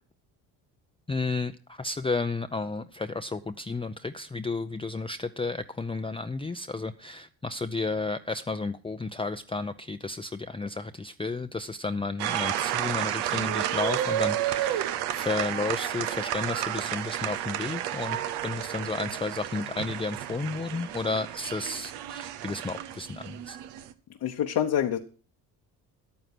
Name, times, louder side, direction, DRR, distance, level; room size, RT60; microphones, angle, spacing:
voice 1, 1.1-23.6, left 3 dB, 15° left, 8 dB, 0.5 m, -32 dB
sound 1, 12.2-23.9, right 12 dB, 85° right, 0.9 m, -31 dB
voice 2, 24.2-25.0, left 10 dB, 60° left, 4 dB, 1.1 m, -26 dB
10.0 x 9.3 x 6.1 m, 0.40 s
supercardioid pair, 75°, 40 cm